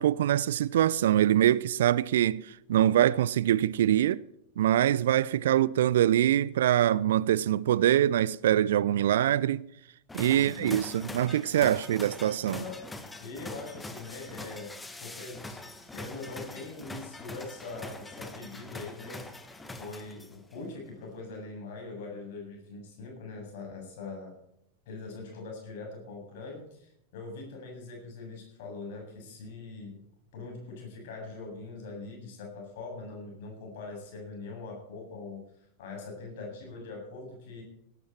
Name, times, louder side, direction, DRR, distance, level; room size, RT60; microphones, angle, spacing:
voice 1, 0.0-4.2 4.6-9.6 10.1-12.6, right 11 dB, 60° right, 0.5 m, -24 dB
sound 1, 10.1-20.5, left 2 dB, 10° left, 1.6 m, -43 dB
voice 2, 10.3-10.8 12.5-12.9 13.2-19.5 19.8-24.4 24.9-30.0 30.3-35.5 35.8-37.6, left 3 dB, 50° left, 7.7 m, -42 dB
18.0 x 12.0 x 4.5 m
figure-of-eight pair, 90°, 0 cm